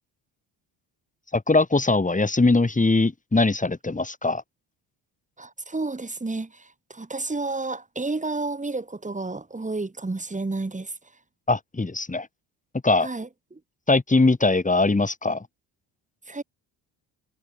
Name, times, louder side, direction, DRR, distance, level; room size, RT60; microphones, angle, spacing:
voice 1, 1.3-4.4 11.5-12.3 12.8-13.1 13.9-15.4, left 3 dB, 15° left, 2.5 m, -21 dB
voice 2, 5.4-10.9 13.0-13.6 16.3-16.4, right 3 dB, 15° right, 2.9 m, -31 dB
supercardioid pair, 75°, 46 cm